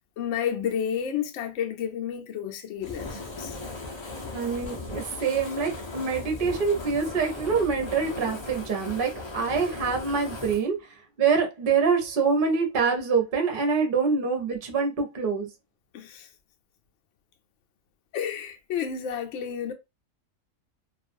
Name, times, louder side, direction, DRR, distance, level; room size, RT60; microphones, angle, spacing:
voice 1, 0.2-3.6 15.9-16.3 18.1-19.7, left 8 dB, 65° left, 0.8 m, -31 dB
Fire, 2.8-10.6, left 3 dB, 40° left, 0.4 m, -37 dB
voice 2, 4.3-15.5, right 5 dB, 45° right, 0.8 m, -25 dB
2.4 x 2.3 x 2.5 m
omnidirectional pair, 1.6 m